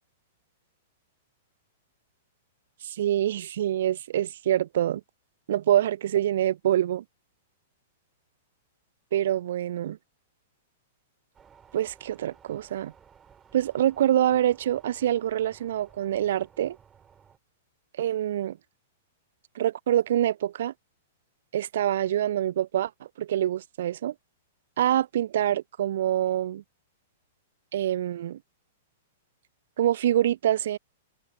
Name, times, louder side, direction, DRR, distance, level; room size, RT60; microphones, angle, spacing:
voice 1, 2.8-5.0 5.5-7.0 9.1-10.0 11.7-12.9 13.5-16.8 18.0-18.6 19.6-20.7 21.5-22.9 23.2-24.1 24.8-26.6 27.7-28.4 29.8-30.8, right 11 dB, 55° right, 0.5 m, -25 dB
sound 1, 11.3-17.4, right 7 dB, 20° right, 4.2 m, -57 dB
figure-of-eight pair, 105°, 0 cm